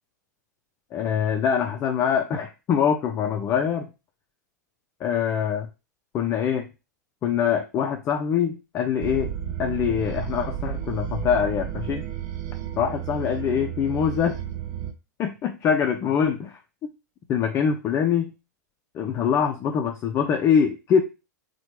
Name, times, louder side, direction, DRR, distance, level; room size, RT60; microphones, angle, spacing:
voice 1, 0.9-3.9 5.0-5.7 6.1-6.7 7.2-9.3 9.6-12.0 12.8-14.4 15.2-16.9 17.3-18.3 18.9-21.0, left 7 dB, 25° left, 4 dB, 0.3 m, -24 dB
sound 1, 9.0-14.9, right 10 dB, 45° right, 0.5 m, -32 dB
2.8 x 2.2 x 3.0 m, 0.28 s
figure-of-eight pair, 95°, 10 cm